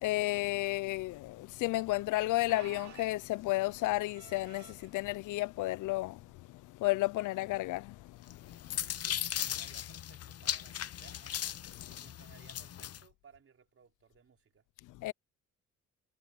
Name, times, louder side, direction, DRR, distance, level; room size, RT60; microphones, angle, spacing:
voice 1, 0.0-6.2 6.5-8.2 8.7-8.8 11.8-11.9 15.0-15.1, left 18 dB, 85° left, 0.5 m, -32 dB
sound 1, 2.5-4.9 5.7-5.9 6.3-6.4 7.3-7.5 9.1-9.2, right 9 dB, 65° right, 2.7 m, -54 dB
sound 2, 8.3-13.0, left 10 dB, 55° left, 0.9 m, -38 dB
voice 2, 8.7-11.4 11.9-14.6, right 7 dB, 45° right, 5.0 m, -62 dB
cardioid pair, 90°, 30 cm